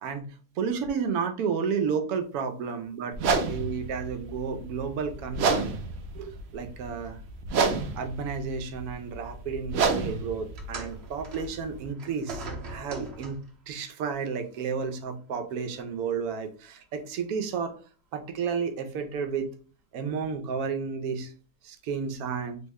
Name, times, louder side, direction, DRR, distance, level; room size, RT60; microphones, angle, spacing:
voice 1, 0.0-3.1 3.5-5.7 6.1-7.2 7.9-17.8 18.1-19.5 19.9-21.3 21.6-22.6, right 6 dB, 85° right, 6 dB, 1.1 m, -32 dB
sound 1, 3.1-11.9, right 4 dB, 65° right, 0.6 m, -30 dB
sound 2, 10.6-13.6 14.6-14.8 15.6-15.7, right 2 dB, 50° right, 0.9 m, -41 dB
3.5 x 2.1 x 3.4 m, 0.39 s
omnidirectional pair, 1.6 m